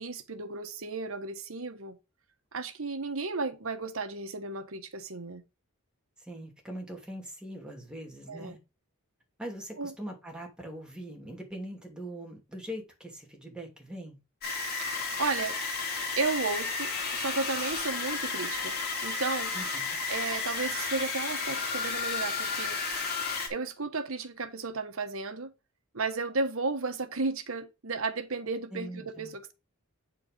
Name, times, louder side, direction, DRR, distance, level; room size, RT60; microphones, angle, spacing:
voice 1, 0.0-2.0 2.5-5.4 8.3-8.6 9.8-9.9 14.8-15.6 16.2-18.8 19.0-19.5 20.1-22.8 23.5-25.5 25.9-29.5, right 3 dB, 70° right, 1.2 m, -34 dB
voice 2, 6.2-8.6 9.4-14.2 19.5-20.0 28.7-29.3, right 1 dB, 5° right, 2.8 m, -42 dB
sound 1, 14.4-23.5, left 4 dB, 50° left, 3.7 m, -32 dB
9.2 x 4.5 x 5.2 m
head